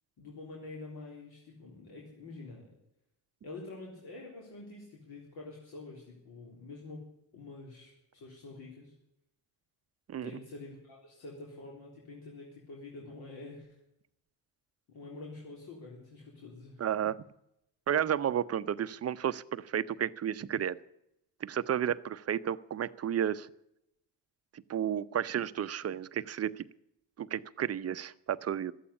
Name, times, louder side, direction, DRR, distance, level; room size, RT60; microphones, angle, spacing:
voice 1, 0.2-2.7 3.4-7.0 7.3-8.9 10.2-13.8 14.9-16.8, left 3 dB, 65° left, -2 dB, 3.9 m, -47 dB
voice 2, 16.8-17.2 17.9-20.8 21.4-23.5 24.7-26.6 27.2-28.7, right 9 dB, 35° right, 15 dB, 0.7 m, -32 dB
13.0 x 8.5 x 9.9 m, 0.81 s
cardioid pair, 90°, 41 cm